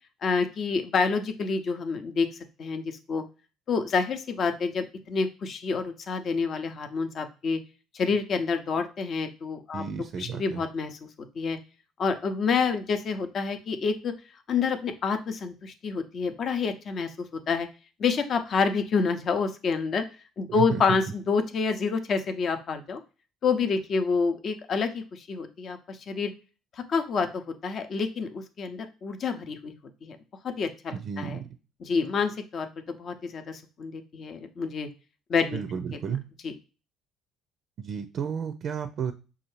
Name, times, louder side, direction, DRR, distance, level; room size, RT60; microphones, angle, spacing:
voice 1, 0.2-2.3 2.6-3.2 3.7-7.6 7.9-9.8 10.2-11.0 11.4-11.6 12.0-14.1 14.5-17.7 18.0-20.0 20.4-23.0 23.4-26.3 26.9-30.2 30.4-31.4 31.8-34.9 35.3-35.6 36.4-36.5, left 5 dB, 50° left, 7 dB, 0.6 m, -28 dB
voice 2, 9.7-10.6 20.5-20.8 30.9-31.5 35.5-36.2 37.8-39.1, right 7 dB, 55° right, 9 dB, 0.4 m, -32 dB
5.5 x 2.3 x 3.1 m, 0.34 s
hypercardioid pair, 55°, 0 cm